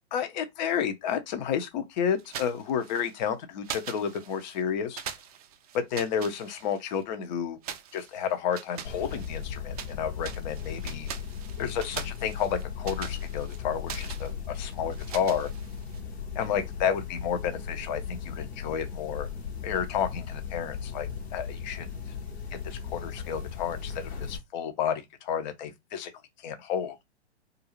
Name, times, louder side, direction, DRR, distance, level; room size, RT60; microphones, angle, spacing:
voice 1, 0.1-5.0 5.7-7.6 7.9-11.1 11.6-15.5 16.4-19.3 19.6-21.9 22.6-26.1 26.4-27.0, left 8 dB, 40° left, 0.6 m, -31 dB
sound 1, 2.2-3.3 3.6-4.6 4.9-7.0 7.6-10.0 10.2-16.0, right 9 dB, 35° right, 0.4 m, -42 dB
sound 2, 8.9-24.4, left 7 dB, 65° left, 0.9 m, -37 dB
2.5 x 2.3 x 2.9 m
figure-of-eight pair, 115°, 34 cm